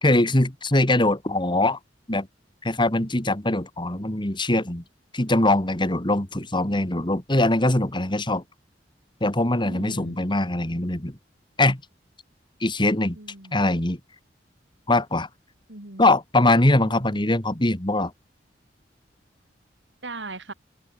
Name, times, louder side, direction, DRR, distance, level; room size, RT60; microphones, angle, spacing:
voice 1, 0.0-1.8 2.1-2.3 2.6-4.8 5.1-8.4 9.2-11.2 11.6-11.8 12.6-13.2 13.5-14.0 14.9-15.3 16.0-18.1, left 2 dB, 25° left, 2.6 m, -22 dB
voice 2, 9.6-10.2 13.1-13.7 15.7-16.1 16.8-17.2 20.0-20.5, right 2 dB, 90° right, 4.0 m, -39 dB
head